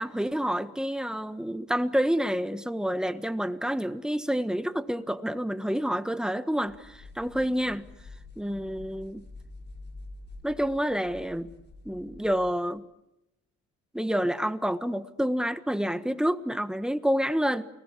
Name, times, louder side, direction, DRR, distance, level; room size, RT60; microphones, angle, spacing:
voice 1, 0.0-7.9 8.4-9.2 10.4-11.5 11.8-12.8 13.9-17.7, equal, ahead, 1.4 m, -28 dB
sound 1, 6.7-12.7, left 3 dB, 35° left, 4.4 m, -47 dB
29.5 x 19.5 x 8.5 m
cardioid pair, 90°, 30 cm